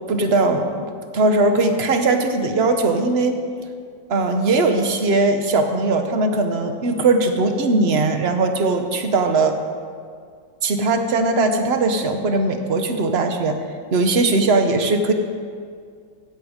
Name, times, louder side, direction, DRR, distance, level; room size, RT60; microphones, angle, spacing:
voice 1, 0.1-0.9 1.1-3.4 4.1-9.6 10.6-13.6 13.9-15.1, right 3 dB, 45° right, 6 dB, 0.8 m, -19 dB
15.5 x 8.1 x 5.1 m, 2.1 s
omnidirectional pair, 2.1 m